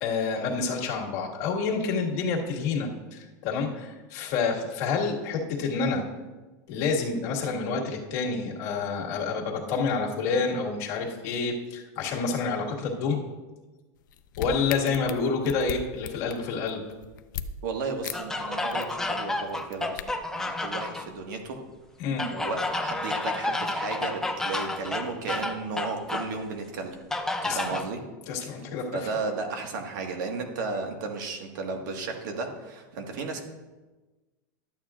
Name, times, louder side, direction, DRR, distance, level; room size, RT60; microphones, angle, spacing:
voice 1, 0.0-6.1 6.7-13.2 14.4-16.8 22.0-22.3 27.4-27.8 28.3-29.1, left 4 dB, 55° left, -1 dB, 1.8 m, -28 dB
sound 1, 14.0-17.5 18.0-18.2 18.5-18.9 19.5-20.0, left 8 dB, 85° left, 0.5 m, -37 dB
voice 2, 17.6-21.6 22.3-27.0 27.5-28.0 28.9-33.4, right 4 dB, 75° right, 3 dB, 1.6 m, -34 dB
sound 2, 18.1-21.1 22.2-26.3 27.1-27.9, left 2 dB, 5° left, 0.5 m, -31 dB
13.0 x 8.9 x 2.5 m, 1.2 s
supercardioid pair, 150°, 10 cm